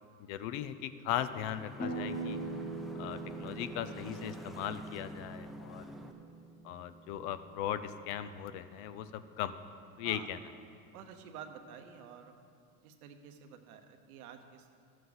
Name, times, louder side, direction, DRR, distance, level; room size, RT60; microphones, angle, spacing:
voice 1, 0.3-2.4 3.0-5.8 6.6-9.6 10.0-10.4, left 10 dB, 65° left, 12 dB, 0.6 m, -38 dB
sound 1, 1.1-6.1, left 1 dB, ahead, 0.6 m, -47 dB
sound 2, 1.8-7.4, right 3 dB, 20° left, 1.3 m, -42 dB
voice 2, 5.8-6.1 10.0-10.3 10.9-12.3 12.8-14.7, right 8 dB, 85° right, 5 dB, 1.0 m, -50 dB
13.0 x 7.5 x 3.9 m, 2.4 s
supercardioid pair, 100°, 43 cm